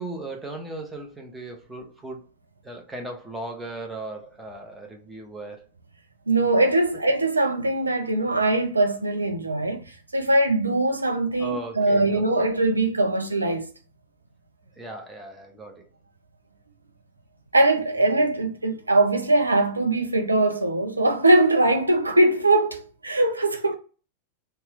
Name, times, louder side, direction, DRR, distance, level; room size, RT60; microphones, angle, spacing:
voice 1, 0.0-2.3 2.6-5.6 11.4-12.5 14.8-15.9, right 2 dB, 10° right, 0.8 m, -37 dB
voice 2, 6.3-9.8 10.1-13.7 17.5-23.8, right 2 dB, 80° right, 0.5 m, -21 dB
2.7 x 2.2 x 3.4 m
figure-of-eight pair, 90°, 0 cm